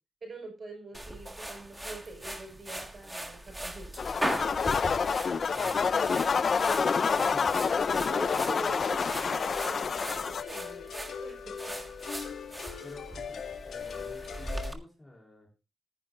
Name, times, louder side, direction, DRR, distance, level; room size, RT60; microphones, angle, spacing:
voice 1, 0.2-3.9 8.1-11.7, right 2 dB, 35° right, 4 dB, 5.9 m, -44 dB
sound 1, 0.9-14.7, right 1 dB, 10° right, 1.7 m, -40 dB
sound 2, 4.0-10.4, left 5 dB, 45° left, 0.7 m, -28 dB
voice 2, 5.5-6.7 7.2-9.4 12.8-15.5, left 1 dB, 15° left, -1 dB, 3.6 m, -49 dB
sound 3, 9.5-14.7, left 7 dB, 70° left, 1.9 m, -40 dB
21.0 x 10.5 x 2.6 m, 0.28 s
wide cardioid pair, 150°, 0 cm